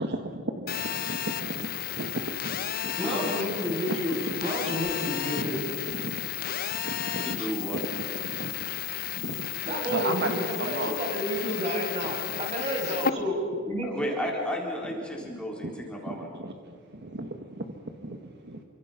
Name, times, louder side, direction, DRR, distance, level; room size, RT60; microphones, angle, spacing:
voice 1, 0.0-3.3 3.6-4.0 4.2-4.8 5.1-6.3 6.6-10.9 12.0-12.7 15.0-18.6, right 2 dB, 50° right, 5 dB, 1.4 m, -36 dB
Telephone, 0.7-13.1, left 10 dB, 45° left, 0.8 m, -33 dB
voice 2, 3.0-5.6 9.6-13.3 13.6-13.9, equal, 30° right, -1 dB, 7.1 m, -30 dB
voice 3, 7.2-7.8 13.8-16.3, equal, 5° left, -1 dB, 4.1 m, -33 dB
29.0 x 25.5 x 5.7 m, 2.2 s
head